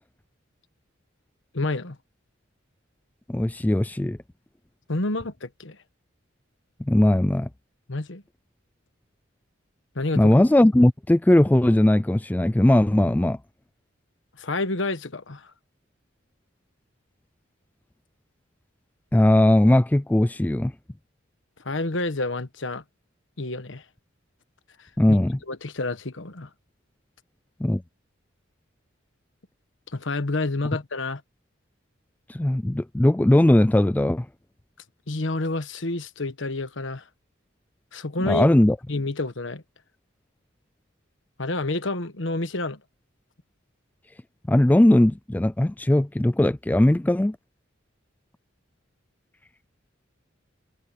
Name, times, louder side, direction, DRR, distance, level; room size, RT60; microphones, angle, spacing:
voice 1, 1.5-2.0 4.9-5.8 7.9-8.2 9.9-10.3 14.4-15.5 21.6-22.8 23.4-23.8 24.8-25.2 25.5-26.5 29.9-31.2 35.1-37.1 37.9-38.5 38.9-39.6 41.4-42.8, left 2 dB, 70° left, 1.3 m, -29 dB
voice 2, 3.3-4.2 6.9-7.5 10.2-13.4 19.1-20.7 25.0-25.4 27.6-27.8 32.3-34.3 38.2-38.8 44.5-47.4, left 1 dB, 10° left, 0.3 m, -19 dB
head